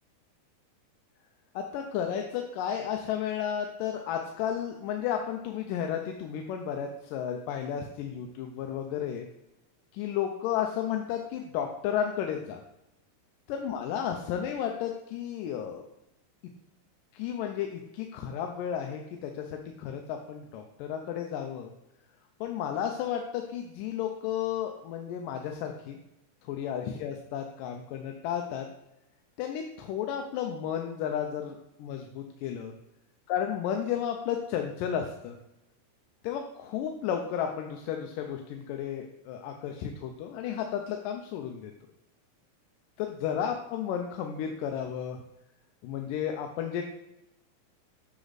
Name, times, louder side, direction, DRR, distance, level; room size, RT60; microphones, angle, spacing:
voice 1, 1.6-9.3 9.9-12.6 13.5-15.8 17.1-21.7 22.4-26.0 26.5-28.7 29.4-32.7 33.3-35.4 36.2-41.7 43.0-45.2 45.8-46.9, left 9 dB, 80° left, 3 dB, 2.2 m, -33 dB
10.0 x 6.2 x 4.0 m, 0.90 s
omnidirectional pair, 4.0 m